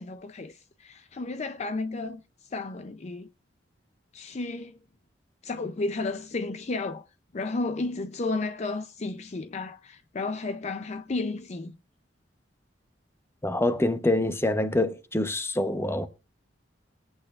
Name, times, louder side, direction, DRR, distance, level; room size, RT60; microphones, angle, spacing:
voice 1, 0.0-2.2 2.5-3.3 4.1-4.8 5.4-7.0 7.3-11.8, left 3 dB, 35° left, 0.5 m, -32 dB
voice 2, 13.4-16.1, left 1 dB, 15° left, 0.8 m, -25 dB
20.5 x 8.6 x 2.4 m
head